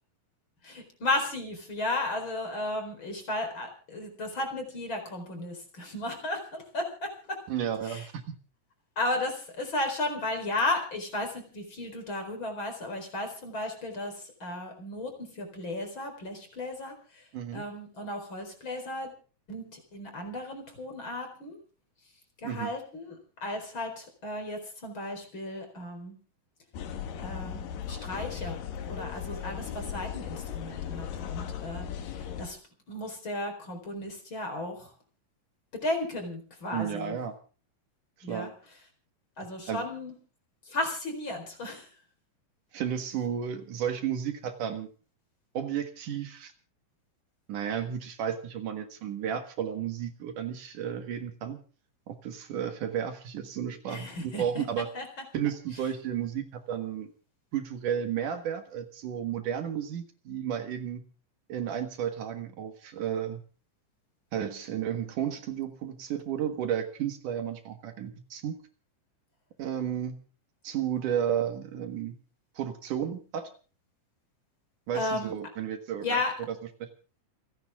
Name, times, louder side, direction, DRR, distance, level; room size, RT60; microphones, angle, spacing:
voice 1, 0.6-7.4 7.9-8.0 9.0-17.2 17.5-19.1 19.5-21.6 22.4-26.2 27.2-32.6 32.9-34.9 35.8-37.2 38.2-38.5 39.4-40.1 40.7-41.9 53.9-54.6 54.9-55.0 74.9-75.3 76.0-76.3, left 2 dB, 35° left, 5 dB, 5.0 m, -34 dB
voice 2, 7.5-8.2 17.3-17.6 22.4-22.7 36.7-37.3 38.3-38.5 39.7-39.9 42.7-44.9 45.5-46.5 47.5-51.6 52.1-54.9 55.3-57.1 57.5-61.0 61.5-63.4 64.3-68.6 69.6-70.2 70.6-72.2 72.6-73.5 74.9-76.2 76.5-76.9, right 9 dB, 70° right, 7 dB, 3.0 m, -33 dB
sound 1, 26.7-32.5, left 8 dB, 80° left, 3.2 m, -37 dB
29.0 x 10.5 x 3.6 m, 0.38 s
omnidirectional pair, 3.9 m